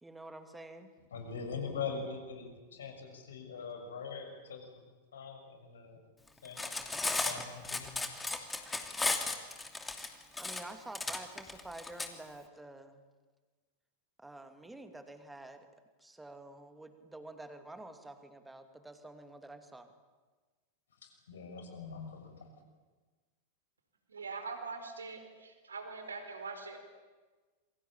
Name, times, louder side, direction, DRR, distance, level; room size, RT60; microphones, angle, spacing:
voice 1, 0.0-0.9 10.4-13.0 14.2-15.6 16.0-19.9, right 2 dB, 5° right, 8 dB, 2.6 m, -49 dB
voice 2, 1.1-4.6 5.1-6.0 6.4-6.7 7.1-8.0 21.0-22.4, left 5 dB, 65° left, 4 dB, 6.3 m, -42 dB
Cutlery silverware, 6.4-12.1, left 3 dB, 10° left, 2.8 m, -35 dB
voice 3, 24.1-26.8, right 4 dB, 70° right, 7 dB, 4.7 m, -43 dB
27.5 x 23.5 x 8.8 m, 1.3 s
figure-of-eight pair, 90°, 0 cm